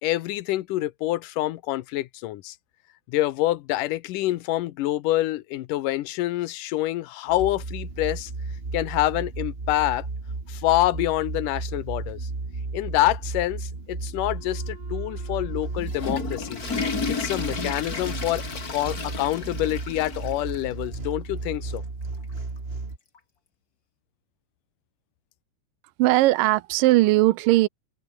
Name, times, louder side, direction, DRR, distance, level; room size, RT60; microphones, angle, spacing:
voice 1, 0.0-2.6 3.1-8.3 8.7-10.1 10.5-12.2 12.7-16.6 17.1-18.4 18.7-21.8, left 16 dB, 80° left, 2.4 m, -26 dB
sound 1, 7.3-23.0, right 3 dB, 20° right, 2.3 m, -34 dB
Wind instrument woodwind instrument, 14.3-19.0, right 3 dB, 45° right, 7.3 m, -52 dB
Water / Toilet flush, 15.6-20.6 20.9-21.0 21.8-21.9 23.1-23.2, left 4 dB, 30° left, 2.5 m, -32 dB
voice 2, 26.0-27.7, right 17 dB, 85° right, 2.4 m, -19 dB
open air
omnidirectional pair, 3.8 m